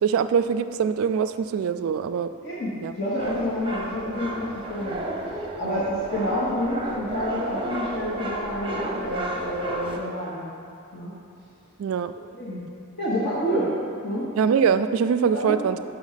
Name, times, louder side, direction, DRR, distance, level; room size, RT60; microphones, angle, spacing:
voice 1, 0.0-2.3 2.8-2.9 5.6-6.0 11.8-12.1 14.4-15.8, right 7 dB, 70° right, 11 dB, 0.3 m, -23 dB
voice 2, 2.4-4.9 5.6-10.4 10.9-11.1 12.3-12.6 13.0-13.7 14.0-14.3 15.3-15.6, equal, 50° left, -7 dB, 1.1 m, -28 dB
sound 1, 3.2-10.0, right 1 dB, 25° right, 0.7 m, -33 dB
6.1 x 5.6 x 5.7 m, 2.4 s
head